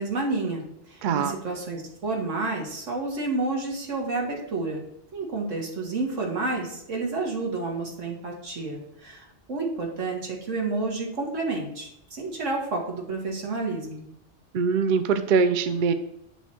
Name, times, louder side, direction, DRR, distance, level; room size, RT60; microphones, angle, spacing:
voice 1, 0.0-4.8 5.1-14.1, right 3 dB, 85° right, 0 dB, 1.8 m, -30 dB
voice 2, 1.0-1.3 14.5-15.9, right 5 dB, 55° right, 9 dB, 0.6 m, -22 dB
9.1 x 3.3 x 4.4 m, 0.77 s
omnidirectional pair, 1.2 m